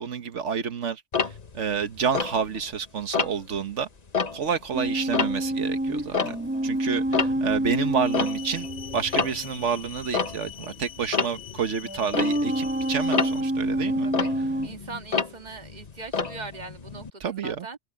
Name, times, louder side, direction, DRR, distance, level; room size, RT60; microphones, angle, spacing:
voice 1, 0.0-3.9 4.3-6.4 6.6-8.7 8.9-14.1 17.2-17.7, right 6 dB, 90° right, 1.5 m, -29 dB
Tick-tock, 1.1-2.8 3.1-3.6 4.0-6.7 7.0-17.1, left 5 dB, 35° left, 1.2 m, -30 dB
sound 1, 4.7-9.6 10.9-11.0 11.8-14.7, right 1 dB, 10° right, 1.3 m, -27 dB
voice 2, 6.0-6.4 6.7-7.0 14.0-14.4 14.6-17.8, right 4 dB, 40° right, 1.9 m, -41 dB
sound 2, 8.0-13.4, left 11 dB, 75° left, 1.4 m, -43 dB
omnidirectional pair, 1.2 m